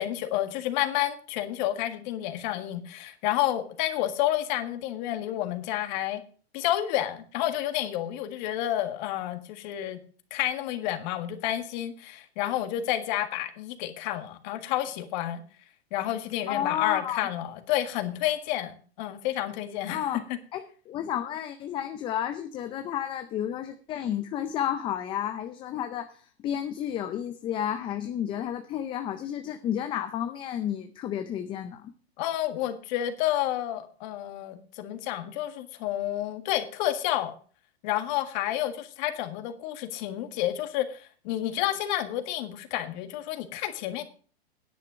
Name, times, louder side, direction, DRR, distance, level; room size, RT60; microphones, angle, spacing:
voice 1, 0.0-6.2 6.5-10.0 10.3-15.4 15.9-20.0 32.2-37.3 37.8-44.0, left 13 dB, 45° left, 8 dB, 1.8 m, -30 dB
voice 2, 16.5-17.3 19.9-20.3 20.5-31.9, left 10 dB, 15° left, 9 dB, 0.5 m, -31 dB
10.5 x 8.6 x 6.2 m, 0.42 s
hypercardioid pair, 140°, 32 cm